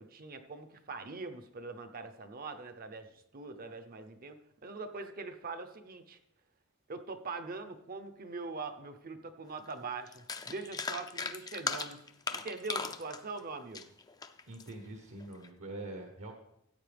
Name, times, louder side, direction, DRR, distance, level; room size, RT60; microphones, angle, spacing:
voice 1, 0.0-6.2 6.9-12.0 12.3-13.9, right 3 dB, 45° right, 8 dB, 0.8 m, -42 dB
sound 1, 9.7-9.8 10.1-14.7 15.2-15.5, left 4 dB, 20° left, 0.5 m, -38 dB
voice 2, 14.5-16.3, right 2 dB, 65° right, 4 dB, 1.2 m, -44 dB
14.0 x 8.4 x 3.4 m, 0.79 s
head